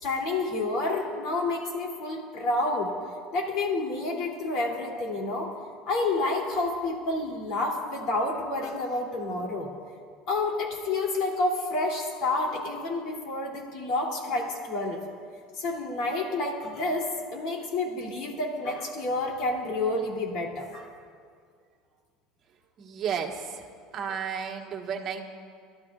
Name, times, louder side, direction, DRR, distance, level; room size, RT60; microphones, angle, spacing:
voice 1, 0.0-2.9 3.3-5.5 5.9-9.7 10.3-15.0 15.6-20.9, left 2 dB, 50° left, 0 dB, 2.8 m, -29 dB
voice 2, 22.8-23.6 23.9-25.2, right 7 dB, 35° right, 1 dB, 1.4 m, -32 dB
29.5 x 12.5 x 2.4 m, 2.1 s
cardioid pair, 155°, 0 cm